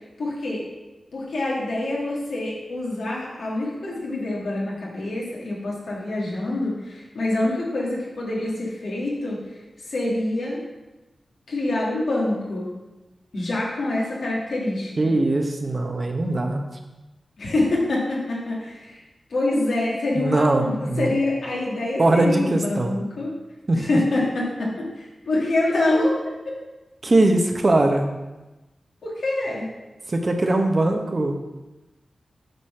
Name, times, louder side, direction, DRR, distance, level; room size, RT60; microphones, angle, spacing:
voice 1, 0.2-0.7 1.1-10.6 11.5-12.7 13.3-15.1 17.4-19.0 19.3-23.3 23.7-26.2 26.4-26.5 29.0-29.7, left 2 dB, 80° left, -4 dB, 2.3 m, -26 dB
voice 2, 15.0-16.6 20.1-21.2 22.0-22.9 23.7-23.9 27.0-28.1 30.1-31.4, right 2 dB, 45° right, 4 dB, 1.1 m, -21 dB
8.0 x 4.1 x 5.8 m, 1.1 s
cardioid pair, 55°, 0 cm